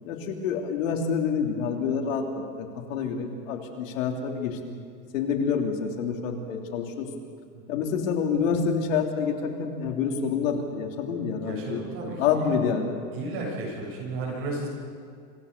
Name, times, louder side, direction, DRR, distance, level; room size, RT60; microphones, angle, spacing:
voice 1, 0.1-4.6 5.1-7.1 7.7-12.9, left 6 dB, 70° left, 2 dB, 3.5 m, -27 dB
voice 2, 11.4-12.6 13.1-14.7, right 2 dB, 30° right, -2 dB, 7.3 m, -34 dB
27.0 x 16.0 x 6.9 m, 2.2 s
supercardioid pair, 165°, 41 cm